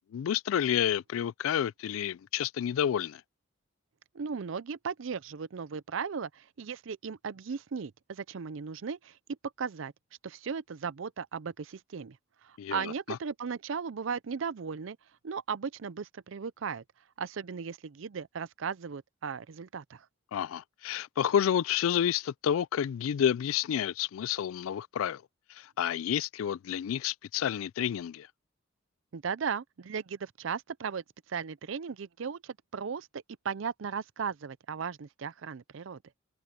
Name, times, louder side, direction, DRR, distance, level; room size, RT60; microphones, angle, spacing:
voice 1, 0.1-3.2 12.6-13.2 20.3-25.2 25.5-28.3, left 9 dB, 80° left, 0.3 m, -30 dB
voice 2, 4.1-9.2 9.6-9.9 10.2-12.2 12.4-15.0 15.2-16.8 17.2-20.1 29.1-31.0 31.3-36.0, right 6 dB, 70° right, 0.5 m, -36 dB
head